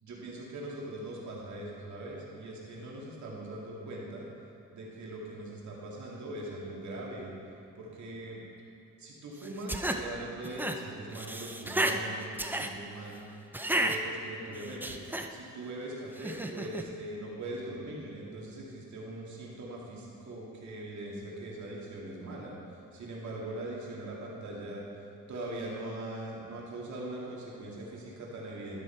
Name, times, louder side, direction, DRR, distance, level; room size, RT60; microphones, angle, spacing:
voice 1, 0.0-4.3 4.7-7.4 7.8-8.4 9.0-13.2 13.7-15.0 15.3-24.8 25.3-28.8, right 1 dB, 65° right, -4 dB, 2.2 m, -41 dB
sound 1, 9.4-10.0 10.4-10.8 11.1-12.0 12.4-12.7 13.5-14.0 14.6-15.3 16.2-16.8, right 1 dB, 5° right, 0.6 m, -32 dB
12.5 x 6.3 x 4.4 m, 2.7 s
cardioid pair, 90°, 31 cm